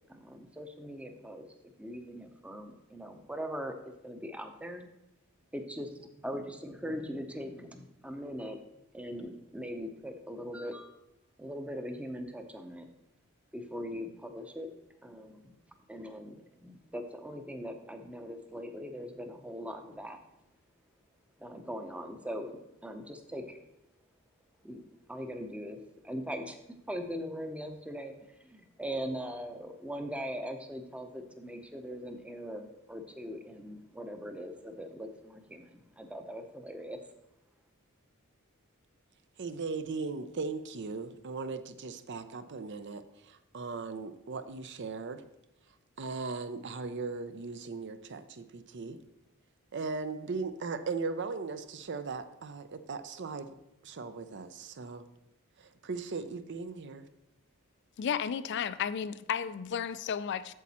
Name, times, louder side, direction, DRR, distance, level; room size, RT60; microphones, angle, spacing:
voice 1, 0.1-4.9 5.5-5.9 6.2-8.6 8.9-11.0 11.4-12.9 13.5-14.7 15.0-15.5 15.9-20.2 21.4-23.6 24.6-24.8 25.1-35.7 36.0-37.0, equal, 5° right, 0.7 m, -41 dB
voice 2, 39.4-45.2 46.0-49.0 49.7-53.5 53.8-55.0 55.6-57.1, right 4 dB, 55° right, 0.6 m, -38 dB
voice 3, 58.0-60.5, left 7 dB, 55° left, 0.3 m, -33 dB
8.3 x 7.3 x 4.2 m
head